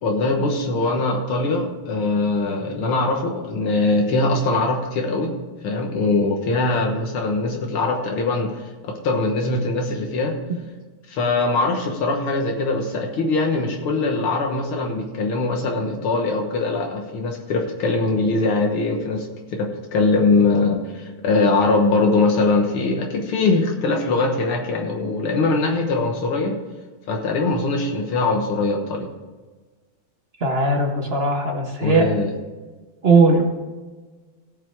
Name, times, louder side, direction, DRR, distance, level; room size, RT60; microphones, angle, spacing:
voice 1, 0.0-5.3 5.6-10.4 11.1-26.6 27.1-29.1 31.8-32.3, left 3 dB, 75° left, 2 dB, 2.1 m, -22 dB
voice 2, 30.4-32.0 33.0-33.4, right 3 dB, 30° right, 2 dB, 1.4 m, -18 dB
16.5 x 5.9 x 4.6 m, 1.3 s
omnidirectional pair, 2.4 m